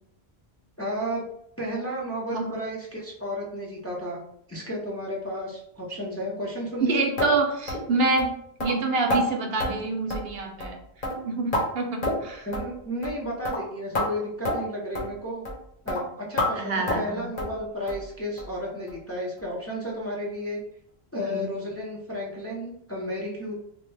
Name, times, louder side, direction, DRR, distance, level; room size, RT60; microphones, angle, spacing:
voice 1, 0.8-1.3 1.6-4.2 4.5-7.0 12.5-15.4 15.8-20.6 21.1-23.5, equal, 15° left, -3 dB, 0.5 m, -32 dB
voice 2, 6.8-8.3 8.6-10.8 11.2-12.5 16.5-17.3 21.2-21.6, right 3 dB, 70° right, 3 dB, 0.8 m, -27 dB
sound 1, 7.2-7.3 7.7-7.8 8.2-8.3 8.6-8.7 9.1-9.2 9.6-9.7 10.1-10.3 10.6-10.8 11.0-11.6 12.0-12.3 12.5-12.7 13.0-13.2 13.4-13.6 13.9-14.1 14.4-14.6 14.9-15.1 15.4-15.6 15.9-16.0 16.4-16.5 16.9-17.1 17.4-17.5 17.9-18.0 18.4-18.5 18.9-19.0 19.4-19.5, left 1 dB, 55° left, 1.0 m, -28 dB
3.1 x 2.2 x 3.2 m, 0.70 s
omnidirectional pair, 1.1 m